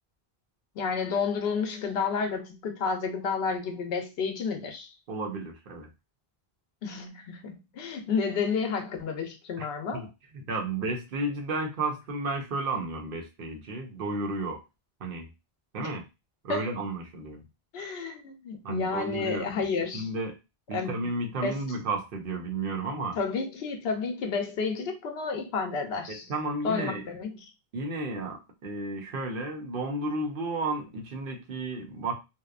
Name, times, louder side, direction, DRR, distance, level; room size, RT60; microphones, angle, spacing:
voice 1, 0.7-4.9 6.8-10.1 15.8-15.9 16.5-16.6 17.7-20.1 20.7-21.0 21.4-21.6 23.2-26.3 26.6-27.4, left 5 dB, 80° left, 4 dB, 0.9 m, -31 dB
voice 2, 5.1-5.9 9.6-9.7 9.9-10.1 10.3-14.6 15.0-15.3 15.7-16.0 16.4-17.4 18.6-19.7 19.9-20.3 20.7-23.2 26.1-27.0 27.7-32.1, right 2 dB, 60° right, 2 dB, 0.9 m, -32 dB
2.8 x 2.1 x 2.3 m, 0.25 s
omnidirectional pair, 1.0 m